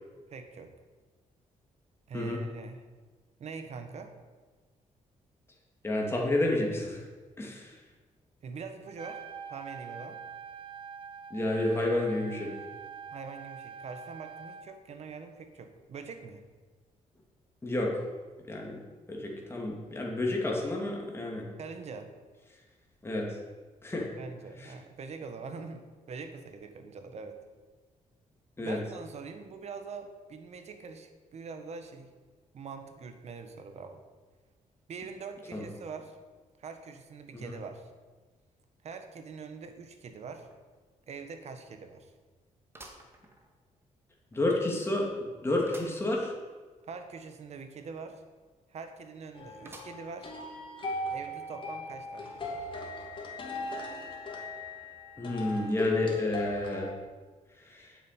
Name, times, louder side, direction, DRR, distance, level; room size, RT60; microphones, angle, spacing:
voice 1, 0.3-0.7 2.1-2.8 3.4-4.1 8.4-9.2 9.5-10.2 13.1-16.4 21.6-22.1 24.2-27.4 28.6-32.1 32.5-34.0 34.9-36.2 36.6-37.9 38.8-40.5 41.1-42.1 46.9-48.2 48.7-50.3 51.1-52.6, right 5 dB, 55° right, 7 dB, 1.5 m, -43 dB
voice 2, 5.8-7.0 7.4-7.8 11.3-12.5 17.6-18.0 18.5-18.8 19.1-21.5 23.0-23.3 23.8-24.1 24.6-24.7 28.6-28.8 35.5-35.7 37.3-37.5 44.3-45.1 45.4-46.3 55.2-56.9 57.6-58.0, left 1 dB, 20° left, -1 dB, 2.8 m, -30 dB
Trumpet, 8.9-14.7, right 6 dB, 40° right, 0.9 m, -44 dB
sound 1, 40.5-40.6 41.0-41.1 42.7-43.8 44.3-44.4 45.7-46.1 46.5-46.6 46.8-46.9 49.6-50.3 50.8-50.9 51.9-52.0, right 1 dB, 20° right, 1.9 m, -51 dB
sound 2, 49.3-56.9, left 3 dB, 40° left, 2.6 m, -37 dB
9.5 x 7.7 x 9.2 m, 1.4 s
cardioid pair, 125°, 13 cm